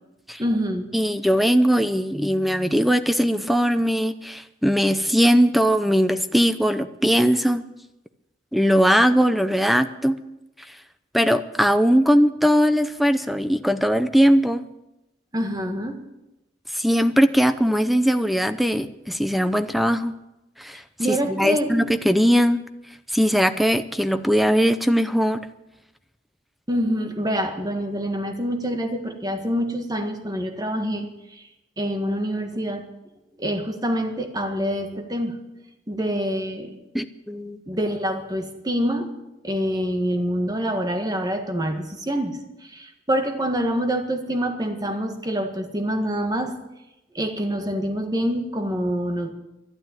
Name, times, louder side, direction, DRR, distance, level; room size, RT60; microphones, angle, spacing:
voice 1, 0.4-0.9 15.3-16.0 21.0-21.7 26.7-31.1 31.4-31.5 31.8-32.8 33.4-35.4 35.9-36.8 37.7-39.1 39.4-42.4 42.7-46.5 47.2-49.3, equal, 20° right, 5 dB, 1.8 m, -26 dB
voice 2, 0.9-7.6 8.5-10.2 11.1-14.6 16.7-20.1 20.6-20.8 21.1-22.6 23.1-25.4 36.9-37.6, equal, ahead, 11 dB, 0.6 m, -20 dB
12.5 x 11.5 x 9.0 m, 0.93 s
head